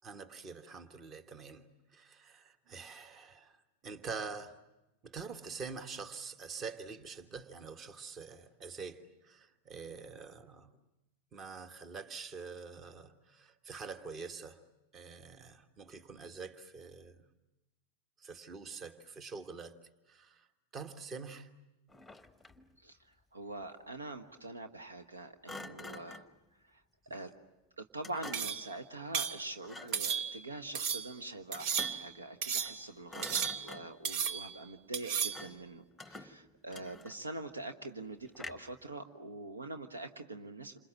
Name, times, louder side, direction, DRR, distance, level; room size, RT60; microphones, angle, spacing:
voice 1, 0.0-4.6 5.0-10.7 11.3-14.6 14.9-17.2 18.2-19.8 20.1-20.5 20.7-21.5 27.1-27.3, right 5 dB, 25° right, 1.4 m, -46 dB
Thump thud, 21.9-22.7 25.5-26.4 28.0-28.7 29.6-30.1 31.5-32.2 32.6-32.8 33.1-34.1 35.3-35.7 36.0-37.4 38.4-38.8, left 2 dB, 5° left, 1.0 m, -48 dB
voice 2, 23.3-26.3 26.6-26.8 27.1-27.3 27.8-40.8, right 2 dB, 75° right, 1.3 m, -44 dB
sound 1, 28.3-28.7 29.1-29.4 29.9-30.4 30.7-31.1 31.5-32.1 32.4-32.8 33.2-33.8 34.0-34.6 34.9-35.5, right 7 dB, 45° right, 1.0 m, -34 dB
28.5 x 27.0 x 7.5 m
figure-of-eight pair, 90°, 0 cm